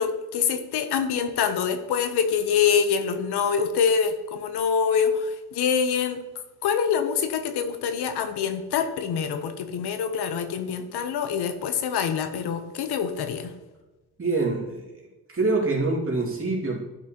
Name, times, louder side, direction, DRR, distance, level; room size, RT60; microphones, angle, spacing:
voice 1, 0.0-6.2 6.6-13.5, left 7 dB, 80° left, 8 dB, 0.8 m, -25 dB
voice 2, 14.2-14.9 15.3-16.8, right 3 dB, 35° right, -2 dB, 2.4 m, -25 dB
11.5 x 5.5 x 2.9 m, 1.1 s
cardioid pair, 80°, 39 cm